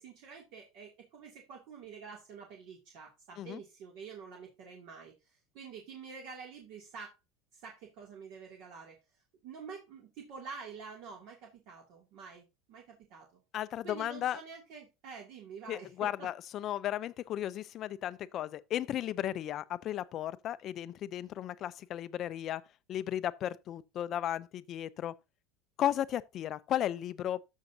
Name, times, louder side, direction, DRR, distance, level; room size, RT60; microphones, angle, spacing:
voice 1, 0.0-5.1 5.5-7.1 7.5-9.0 9.4-13.3 13.8-16.3, right 5 dB, 55° right, 2.5 m, -48 dB
voice 2, 13.5-14.4 15.7-22.6 22.9-25.1 25.8-27.4, left 11 dB, 35° left, 0.5 m, -35 dB
13.0 x 6.4 x 2.7 m
supercardioid pair, 155°, 0 cm